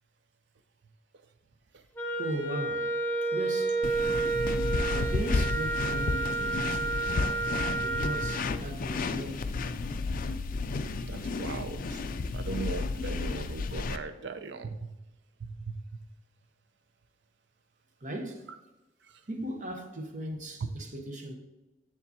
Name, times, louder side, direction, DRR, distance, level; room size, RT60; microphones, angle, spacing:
Wind instrument woodwind instrument, 2.0-8.4, right 3 dB, 10° left, 0.9 m, -30 dB
voice 1, 2.2-3.0 3.3-3.9 4.9-7.0 7.8-9.6 18.0-18.5 19.3-21.4, right 1 dB, 45° right, 0.9 m, -37 dB
sound 1, 3.8-14.0, left 3 dB, 50° left, 0.4 m, -32 dB
voice 2, 11.0-12.0 12.3-14.9 15.4-15.8, right 4 dB, 70° right, 0.5 m, -38 dB
7.0 x 7.0 x 2.8 m
head